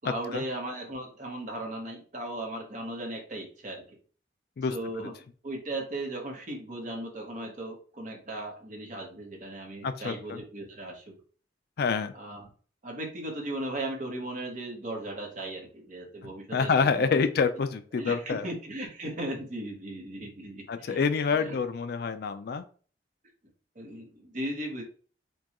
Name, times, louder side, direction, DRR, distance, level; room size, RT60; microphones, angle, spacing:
voice 1, 0.0-3.8 4.7-5.1 5.4-11.1 12.1-12.5 12.8-17.2 17.9-21.0 21.4-21.5 23.7-24.8, right 1 dB, 45° right, 1 dB, 1.0 m, -37 dB
voice 2, 4.6-5.1 9.8-10.4 11.8-12.1 16.5-18.5 20.7-22.6, left 5 dB, 60° left, 11 dB, 0.3 m, -27 dB
4.5 x 2.3 x 2.9 m, 0.41 s
head